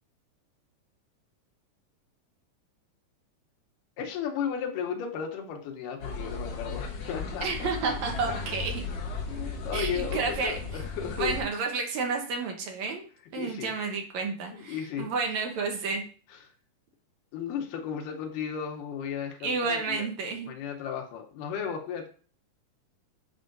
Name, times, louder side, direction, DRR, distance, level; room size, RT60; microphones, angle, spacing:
voice 1, 4.0-7.9 8.3-8.4 9.3-11.4 13.4-13.7 14.5-15.1 16.3-16.4 17.3-20.1 20.4-22.1, left 7 dB, 80° left, 1 dB, 2.5 m, -35 dB
sound 1, 6.0-11.4, left 4 dB, 60° left, 1.8 m, -36 dB
voice 2, 7.4-8.8 9.7-10.6 11.2-13.1 13.3-16.0 19.4-20.5, right 4 dB, 70° right, 2 dB, 2.1 m, -30 dB
8.4 x 5.5 x 2.6 m, 0.41 s
omnidirectional pair, 3.7 m